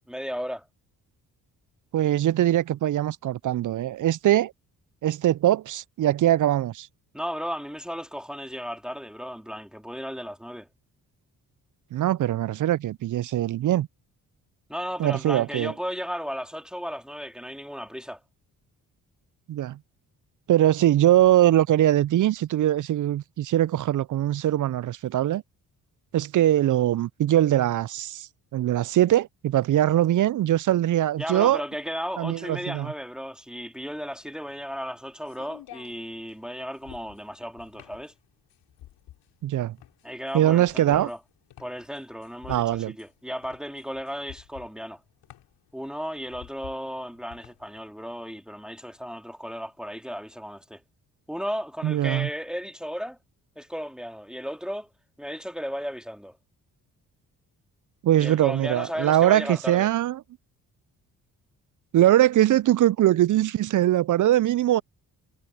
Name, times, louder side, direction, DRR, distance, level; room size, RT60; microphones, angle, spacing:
voice 1, 0.1-0.7 7.1-10.7 14.7-18.2 31.2-38.1 40.0-41.2 41.6-45.0 45.7-50.8 51.3-53.2 53.6-54.9 55.2-56.4 58.2-59.9, equal, ahead, 2.9 m, -35 dB
voice 2, 1.9-4.5 5.0-6.9 11.9-13.9 15.0-15.7 19.5-19.8 20.5-25.4 26.1-31.6 32.2-32.9 39.4-39.8 40.3-41.1 42.5-42.9 51.8-52.3 58.0-60.2 61.9-64.8, right 13 dB, 50° right, 0.5 m, -22 dB
sound 1, 33.9-47.8, left 13 dB, 80° left, 4.5 m, -50 dB
supercardioid pair, 55°, 41 cm